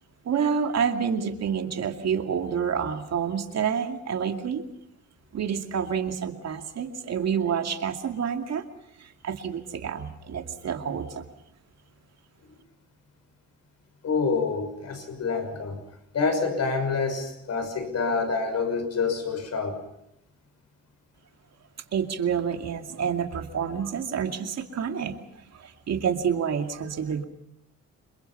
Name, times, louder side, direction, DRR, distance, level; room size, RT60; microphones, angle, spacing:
voice 1, 0.3-4.6 5.3-8.6 9.2-11.2 21.9-25.1 25.9-27.2, right 7 dB, 60° right, 5 dB, 2.5 m, -28 dB
voice 2, 14.0-15.8 16.1-19.8, left 4 dB, 60° left, 8 dB, 6.1 m, -27 dB
28.0 x 22.5 x 5.8 m, 0.79 s
cardioid pair, 90°, 30 cm